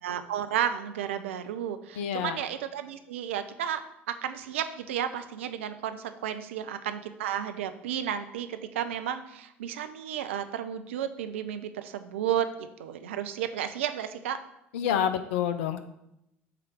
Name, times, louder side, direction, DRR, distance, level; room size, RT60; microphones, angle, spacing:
voice 1, 0.0-3.8 4.1-14.4, right 10 dB, 80° right, 9 dB, 0.5 m, -32 dB
voice 2, 2.0-2.4 14.7-15.8, left 9 dB, 75° left, 10 dB, 0.6 m, -28 dB
7.6 x 3.2 x 6.1 m, 0.81 s
hypercardioid pair, 60°, 7 cm